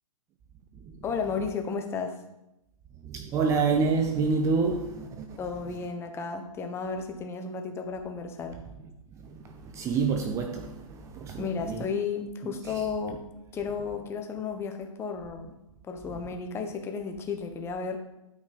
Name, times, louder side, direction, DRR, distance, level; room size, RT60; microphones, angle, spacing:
voice 1, 1.0-2.2 5.4-8.6 11.4-13.2 13.5-15.5 15.8-18.0, left 5 dB, 15° left, 1.1 m, -33 dB
voice 2, 3.1-5.3 9.7-11.9, right 4 dB, 15° right, 0.6 m, -27 dB
12.0 x 5.2 x 5.2 m
hypercardioid pair, 130°, 18 cm